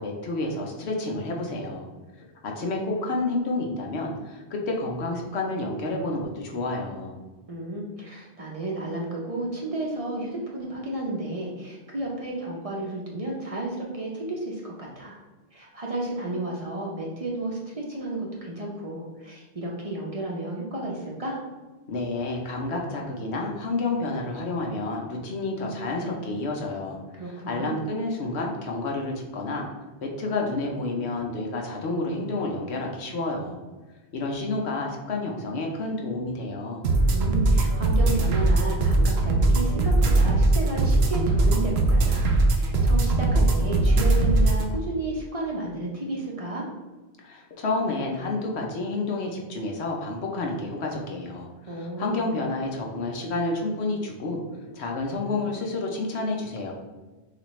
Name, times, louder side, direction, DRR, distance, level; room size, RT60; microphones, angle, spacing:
voice 1, 0.0-1.9 2.4-7.2 21.9-27.0 27.3-29.7 30.0-33.6 34.1-36.8 47.2-54.4 54.7-56.7, left 2 dB, 75° left, 0 dB, 1.1 m, -29 dB
voice 2, 7.5-15.2 15.5-21.4 27.1-27.7 37.1-46.7 51.7-52.3, right 2 dB, 35° right, -3 dB, 0.8 m, -32 dB
sound 1, 36.8-44.6, right 2 dB, 70° right, 0.9 m, -20 dB
6.3 x 2.5 x 3.1 m, 1.2 s
omnidirectional pair, 1.1 m